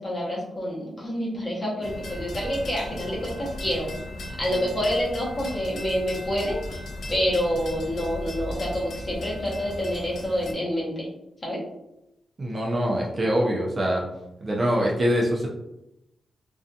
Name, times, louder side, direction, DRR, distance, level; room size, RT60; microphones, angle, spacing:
voice 1, 0.0-3.9 4.4-6.8 7.1-11.1 11.4-11.6, equal, 30° left, -5 dB, 0.8 m, -27 dB
sound 1, 1.8-10.5, left 1 dB, 70° left, 0.4 m, -36 dB
voice 2, 12.4-14.0 14.4-15.5, equal, 30° right, -2 dB, 0.5 m, -24 dB
2.5 x 2.2 x 2.6 m, 0.88 s
wide cardioid pair, 130°, 0 cm